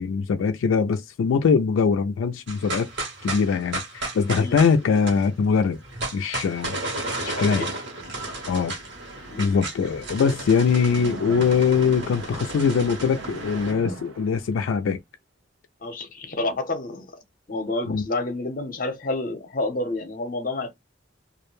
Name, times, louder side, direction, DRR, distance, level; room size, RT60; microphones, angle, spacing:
voice 1, 0.0-2.9 3.2-5.8 6.1-6.8 7.3-7.6 8.5-8.7 9.4-15.0 17.9-18.0, left 5 dB, 80° left, 0.3 m, -22 dB
sound 1, 2.5-13.7, right 2 dB, 60° right, 1.1 m, -33 dB
voice 2, 7.2-7.7 9.3-9.6 13.7-14.0 15.8-17.1 17.5-20.7, left 2 dB, 45° left, 0.7 m, -29 dB
Splash splatter, 10.7-14.7, right 3 dB, 85° right, 0.5 m, -39 dB
2.4 x 2.1 x 3.0 m
head